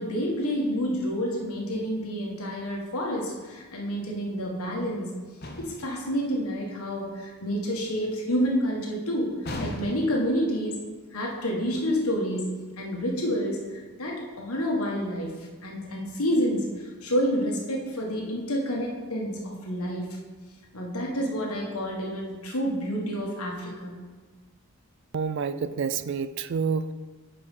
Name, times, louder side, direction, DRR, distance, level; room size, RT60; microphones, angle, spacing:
voice 1, 0.0-5.1 5.6-10.8 11.1-15.3 15.6-16.7 17.0-20.1 20.7-23.9, equal, 80° left, -1 dB, 1.5 m, -29 dB
sound 1, 5.4-6.0 9.4-10.3, left 1 dB, 45° left, 0.8 m, -35 dB
voice 2, 25.1-26.9, right 6 dB, 55° right, 12 dB, 0.3 m, -28 dB
7.0 x 4.9 x 5.3 m, 1.3 s
head